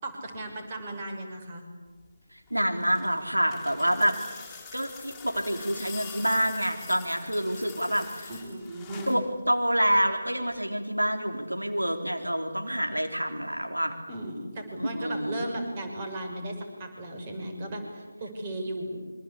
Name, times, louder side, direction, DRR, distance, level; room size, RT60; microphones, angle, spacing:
voice 1, 0.0-1.6 8.3-9.2 14.1-19.0, right 1 dB, 25° right, 3 dB, 5.9 m, -36 dB
sound 1, 2.5-9.3 10.5-10.6, left 6 dB, 10° left, 4.7 m, -45 dB
voice 2, 2.5-4.2 4.7-8.3 9.1-9.2 9.5-13.9 14.8-15.4, equal, 90° right, 4 dB, 4.0 m, -27 dB
26.5 x 25.5 x 8.5 m, 1.3 s
figure-of-eight pair, 155°, 0 cm